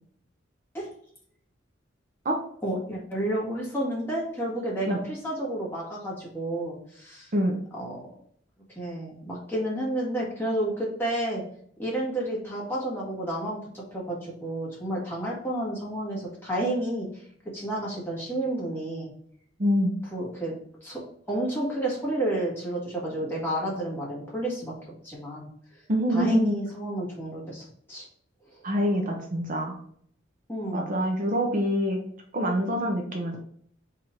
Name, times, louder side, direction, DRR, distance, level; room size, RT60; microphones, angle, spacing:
voice 1, 2.6-7.3 7.7-8.1 8.7-11.4 11.8-17.1 17.5-19.1 20.1-20.5 20.8-21.0 21.3-24.7 25.0-25.5 26.1-28.1 30.5-30.9, right 1 dB, 10° left, -5 dB, 1.5 m, -31 dB
voice 2, 19.6-20.0 25.9-26.5 28.6-29.8 30.7-32.0 32.3-33.4, equal, 45° right, 1 dB, 0.6 m, -25 dB
4.2 x 2.6 x 4.5 m, 0.64 s
head